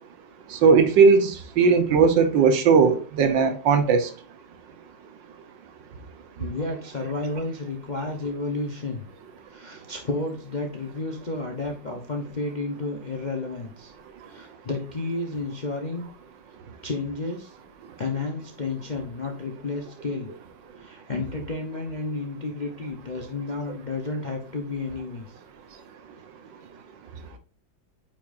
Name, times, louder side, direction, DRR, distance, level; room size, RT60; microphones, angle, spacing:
voice 1, 0.5-4.1, right 5 dB, 70° right, 1.6 m, -18 dB
voice 2, 6.4-9.1 9.5-13.9 14.2-16.1 16.8-17.6 18.0-20.3 20.8-25.4, left 3 dB, 40° left, 0.6 m, -31 dB
8.7 x 5.7 x 2.5 m
omnidirectional pair, 2.1 m